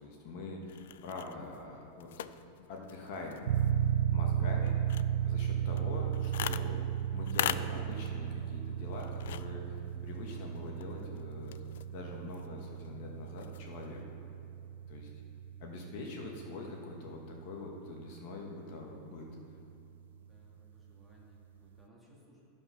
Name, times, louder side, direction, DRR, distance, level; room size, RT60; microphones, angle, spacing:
voice 1, 0.0-2.3 2.7-3.5 4.1-4.8 5.2-6.8 7.1-11.5 11.9-14.0 14.9-15.1 15.6-19.3, left 3 dB, 50° left, 0 dB, 1.3 m, -44 dB
sound 1, 0.6-14.0, left 11 dB, 75° left, 0.3 m, -44 dB
sound 2, 3.5-17.9, right 10 dB, 80° right, 0.3 m, -35 dB
voice 2, 20.2-22.4, equal, ahead, -6 dB, 1.7 m, -62 dB
13.0 x 5.4 x 5.8 m, 2.7 s
supercardioid pair, 165°, 0 cm